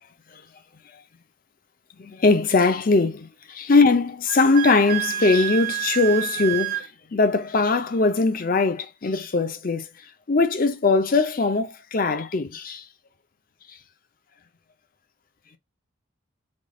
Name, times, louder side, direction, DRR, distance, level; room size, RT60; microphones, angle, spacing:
voice 1, 2.0-9.9 10.3-12.8, left 3 dB, 40° left, 0.5 m, -21 dB
Wind instrument woodwind instrument, 4.3-6.9, right 15 dB, 40° right, 0.4 m, -28 dB
3.6 x 2.3 x 3.7 m
head